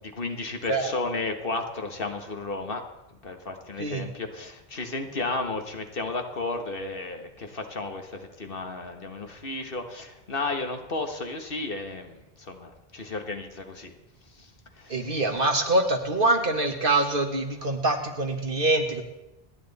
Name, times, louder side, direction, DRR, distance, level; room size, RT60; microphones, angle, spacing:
voice 1, 0.0-2.8 3.2-13.9 14.3-15.2 16.3-16.4, left 3 dB, 65° left, 5 dB, 1.7 m, -33 dB
voice 2, 14.9-19.0, right 2 dB, 60° right, 4 dB, 2.0 m, -24 dB
28.5 x 10.5 x 4.2 m, 0.94 s
omnidirectional pair, 1.0 m